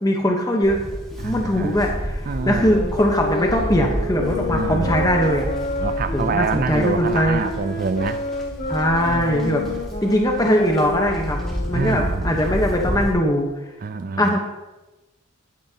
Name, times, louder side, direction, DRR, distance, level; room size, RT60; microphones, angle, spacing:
voice 1, 0.0-0.8 1.2-5.5 6.1-7.4 8.7-9.6 10.0-11.4 11.7-13.5 14.2-14.4, equal, 20° left, 1 dB, 1.0 m, -21 dB
Livestock farm animals working animals, 0.6-13.1, equal, ahead, 1.8 m, -30 dB
voice 2, 1.2-1.9 2.3-2.8 4.5-5.1 5.8-8.3 9.1-9.8 11.7-12.6 13.8-14.4, right 4 dB, 45° right, 10 dB, 0.4 m, -27 dB
sound 1, 2.4-12.4, left 1 dB, 40° left, 2.0 m, -29 dB
12.0 x 9.5 x 2.9 m, 1.1 s
head